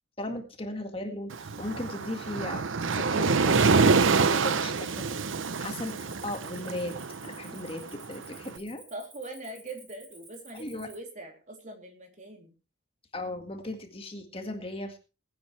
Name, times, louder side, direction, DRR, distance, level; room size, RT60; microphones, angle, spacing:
voice 1, 0.2-2.6 2.9-5.1 5.3-6.9 7.2-8.8 10.6-10.9 13.1-15.0, left 1 dB, 30° left, 5 dB, 1.9 m, -37 dB
Waves surf, 1.3-8.4, right 4 dB, 80° right, 0.8 m, -26 dB
Cricket, 4.7-11.0, right 3 dB, 20° right, 2.6 m, -52 dB
voice 2, 8.9-12.5, right 2 dB, 40° right, 3 dB, 3.3 m, -42 dB
21.0 x 9.4 x 3.3 m, 0.31 s
head